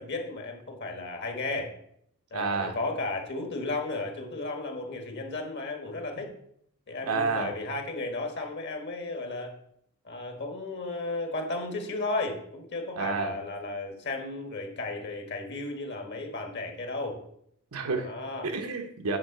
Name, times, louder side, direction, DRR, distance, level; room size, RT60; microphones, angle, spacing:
voice 1, 0.0-1.7 2.3-6.3 6.9-9.5 10.0-17.2 18.0-18.5, left 2 dB, 50° left, 4 dB, 1.5 m, -34 dB
voice 2, 2.3-2.8 6.2-6.3 7.0-7.6 13.0-13.4 17.7-18.1 18.4-19.2, right 4 dB, 80° right, 4 dB, 1.1 m, -30 dB
8.7 x 3.5 x 6.7 m, 0.72 s
head